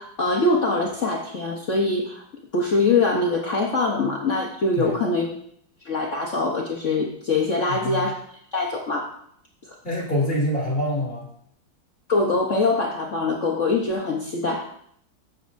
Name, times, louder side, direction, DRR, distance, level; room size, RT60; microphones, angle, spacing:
voice 1, 0.0-2.2 2.5-5.3 5.8-8.1 8.5-9.1 9.7-9.8 12.1-14.6, left 3 dB, 60° left, -1 dB, 0.8 m, -23 dB
voice 2, 7.7-8.1 9.8-11.3, left 1 dB, 25° left, -5 dB, 3.0 m, -25 dB
12.5 x 7.2 x 2.6 m, 0.68 s
omnidirectional pair, 2.4 m